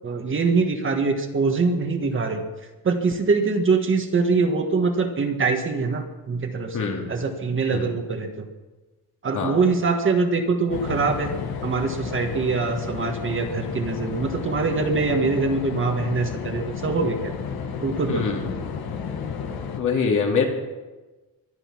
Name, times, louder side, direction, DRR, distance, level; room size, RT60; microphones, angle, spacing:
voice 1, 0.0-2.4 2.8-8.5 9.2-11.3 11.6-17.3 17.8-18.4, right 4 dB, 35° right, 4 dB, 1.7 m, -23 dB
voice 2, 6.7-7.1 7.7-7.9 9.3-9.6 18.1-18.5 19.8-20.4, left 5 dB, 55° left, 1 dB, 3.0 m, -24 dB
sound 1, 10.7-19.8, left 6 dB, 80° left, 1.9 m, -32 dB
22.5 x 10.5 x 6.1 m, 1.2 s
cardioid pair, 165°, 36 cm